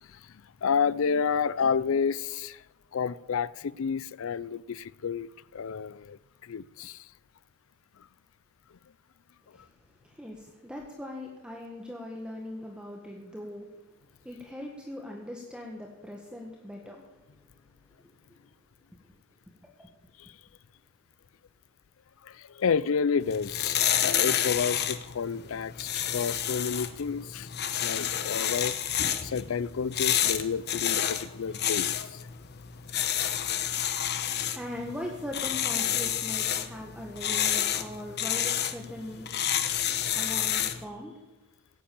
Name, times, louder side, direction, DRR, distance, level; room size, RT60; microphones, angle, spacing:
voice 1, 0.0-2.6 2.9-7.1 20.2-20.3 22.2-27.5 27.8-28.8 29.2-32.2, left 6 dB, 65° left, 0.4 m, -30 dB
voice 2, 9.5-13.7 14.2-17.1 18.0-18.2 19.6-19.9 34.1-39.3 40.1-41.2, left 1 dB, 5° right, 1.5 m, -40 dB
sound 1, 23.2-40.8, left 10 dB, 50° left, 1.0 m, -30 dB
16.5 x 8.6 x 8.4 m
head